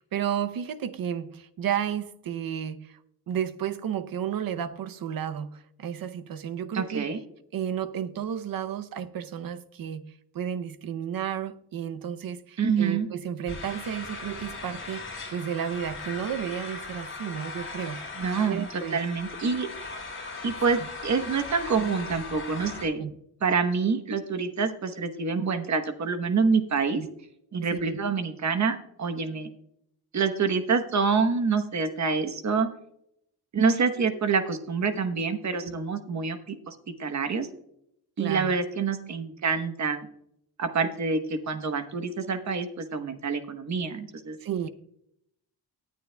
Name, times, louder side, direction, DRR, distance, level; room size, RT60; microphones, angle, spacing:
voice 1, 0.0-3.0 3.3-7.2 7.5-19.0 20.8-20.9 22.9-23.1 26.9-27.1 27.7-28.0 35.6-35.8 38.2-38.5 44.4-44.7, right 9 dB, 60° right, 0.6 m, -32 dB
voice 2, 6.7-7.2 12.6-13.1 18.2-19.7 20.4-23.0 23.4-27.0 27.5-29.5 30.1-32.7 33.5-37.5 38.2-40.1 40.6-44.4, right 5 dB, 45° right, 1.0 m, -27 dB
sound 1, 13.5-22.8, left 3 dB, 30° left, 4.6 m, -39 dB
18.5 x 9.3 x 2.2 m
wide cardioid pair, 165°, 40 cm